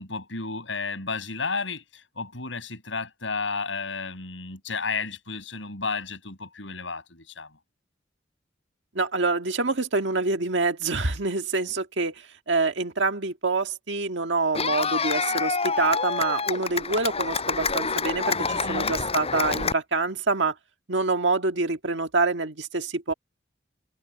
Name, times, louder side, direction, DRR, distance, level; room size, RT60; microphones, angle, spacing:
voice 1, 0.0-7.5 18.3-19.0, left 4 dB, 85° left, 7.0 m, -33 dB
voice 2, 9.0-20.5 20.9-23.1, right 3 dB, 70° right, 1.8 m, -26 dB
Clapping / Cheering, 14.5-19.7, left 4 dB, 35° left, 6.4 m, -27 dB
head